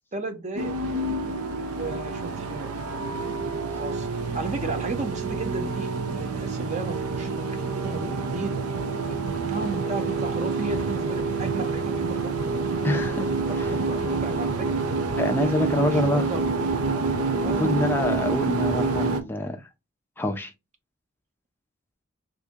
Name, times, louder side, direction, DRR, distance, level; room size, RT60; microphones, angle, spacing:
voice 1, 0.1-0.7 1.7-2.7 3.8-4.1 4.3-8.5 9.1-9.2 9.5-12.3 12.7-12.9 13.2-14.8 15.4-16.4 17.4-17.7, right 3 dB, 35° right, 0.6 m, -34 dB
sound 1, 0.6-19.2, right 3 dB, 85° right, 0.6 m, -27 dB
voice 2, 12.8-13.3 13.6-13.7 15.2-16.3 17.5-19.6 20.2-20.5, left 1 dB, 10° left, 0.4 m, -26 dB
2.7 x 2.6 x 3.6 m
head